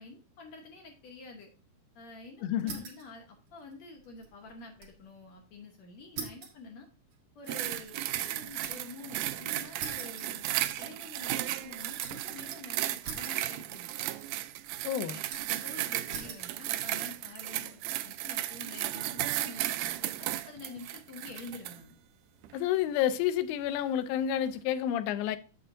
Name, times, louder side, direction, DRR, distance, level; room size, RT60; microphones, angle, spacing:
voice 1, 0.0-1.5 1.9-6.9 7.3-10.4 10.8-13.9 15.1-19.6 20.0-22.0, left 3 dB, 70° left, 1.7 m, -48 dB
voice 2, 2.4-2.8 14.8-15.2 22.5-25.4, left 10 dB, 90° left, 2.4 m, -29 dB
sound 1, 2.6-3.1 3.5-5.0 5.3-5.4 6.2-9.0 9.8-10.9 11.3-12.3 13.0-13.9 14.2-14.8 15.3-15.7 16.1-16.5 17.2-17.6, right 6 dB, 65° right, 2.8 m, -44 dB
sound 2, 7.5-21.8 22.4-22.6, right 14 dB, 90° right, 1.8 m, -35 dB
7.8 x 7.5 x 2.6 m
omnidirectional pair, 4.1 m